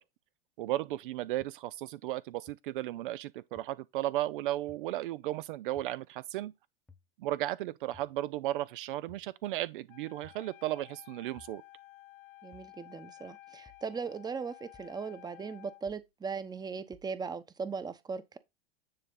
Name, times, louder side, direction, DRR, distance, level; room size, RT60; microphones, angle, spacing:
voice 1, 0.6-6.5 7.2-11.6, right 15 dB, 60° right, 0.6 m, -35 dB
sound 1, 1.4-1.5 2.5-2.6 3.6-3.7 4.7-4.8 5.8-5.9 6.9-7.1 7.9-8.2 9.1-9.3 10.2-10.5 11.4-11.6 12.5-12.7 13.7-13.9 14.7-15.0 15.9-16.1 16.9-17.1, left 3 dB, 5° left, 1.2 m, -58 dB
Wind instrument woodwind instrument, 9.9-15.9, left 17 dB, 55° left, 0.9 m, -54 dB
voice 2, 12.4-18.4, right 5 dB, 15° right, 0.9 m, -38 dB
9.8 x 4.1 x 3.8 m
hypercardioid pair, 100°, 30 cm